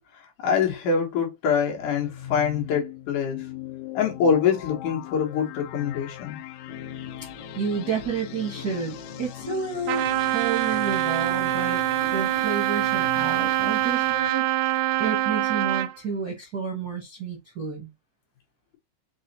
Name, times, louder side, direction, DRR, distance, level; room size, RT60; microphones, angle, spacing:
voice 1, 0.4-3.5 3.9-6.4, left 6 dB, 70° left, 2.6 m, -24 dB
sound 1, 1.8-14.3, left 13 dB, 85° left, 1.5 m, -40 dB
sound 2, 6.7-12.5, left 4 dB, 55° left, 1.3 m, -44 dB
voice 2, 7.5-10.1 10.3-11.8 12.1-17.9, right 5 dB, 50° right, 1.1 m, -30 dB
Trumpet, 9.9-15.9, right 15 dB, 80° right, 2.0 m, -24 dB
6.2 x 2.1 x 4.0 m
omnidirectional pair, 3.8 m